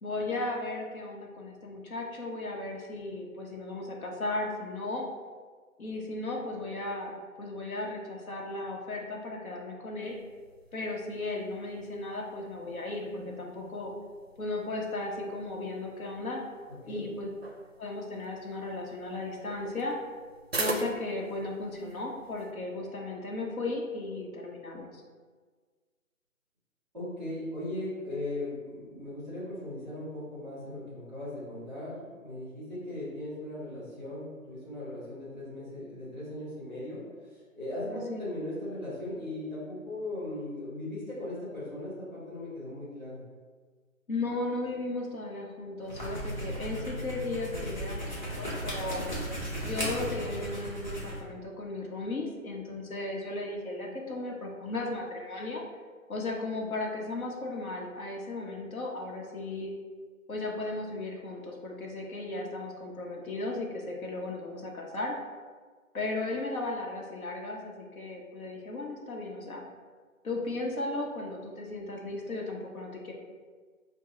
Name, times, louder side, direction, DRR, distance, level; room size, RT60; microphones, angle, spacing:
voice 1, 0.0-5.1 5.8-10.2 10.7-13.9 14.4-16.4 16.9-17.3 17.8-20.0 20.6-25.0 37.9-38.2 44.1-49.0 49.6-55.6 56.1-59.7 60.3-65.2 65.9-69.6 70.2-73.1, left 2 dB, 80° left, 0 dB, 1.0 m, -36 dB
sound 1, 10.0-22.5, right 1 dB, 50° right, 0.4 m, -43 dB
voice 2, 26.9-43.2, left 1 dB, ahead, -12 dB, 1.3 m, -38 dB
sound 2, 45.8-51.2, equal, 35° left, 1.0 m, -36 dB
4.7 x 2.2 x 3.7 m, 1.5 s
hypercardioid pair, 175°, 42 cm